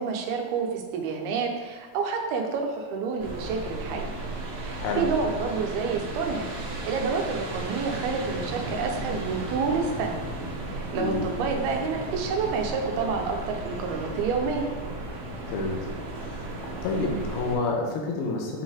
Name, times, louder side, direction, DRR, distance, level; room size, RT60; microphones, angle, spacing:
voice 1, 0.0-4.0 4.5-10.2 10.7-14.7, right 5 dB, 85° right, 2 dB, 2.8 m, -29 dB
sound 1, 3.2-17.6, right 2 dB, 60° right, 2.6 m, -35 dB
voice 2, 11.0-11.3 15.5-16.4 16.8-18.6, left 3 dB, 85° left, 0 dB, 3.1 m, -29 dB
8.5 x 5.4 x 3.6 m, 1.4 s
omnidirectional pair, 4.3 m